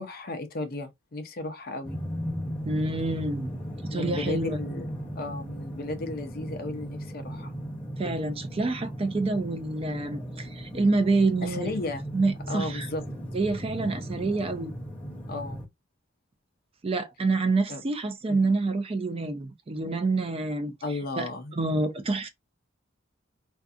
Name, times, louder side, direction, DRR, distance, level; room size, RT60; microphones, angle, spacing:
voice 1, 0.0-2.0 3.9-4.9 5.2-7.6 11.4-12.0 12.5-13.0 15.3-15.6 17.7-17.8 18.3-18.4 20.8-21.5, left 2 dB, 50° left, 0.6 m, -34 dB
sound 1, 1.8-15.7, equal, 5° left, 0.7 m, -37 dB
voice 2, 2.6-3.5 3.8-4.6 8.0-11.7 12.1-12.9 13.3-14.7 16.8-20.7 21.2-22.3, right 3 dB, 30° right, 0.4 m, -27 dB
2.5 x 2.5 x 2.4 m
head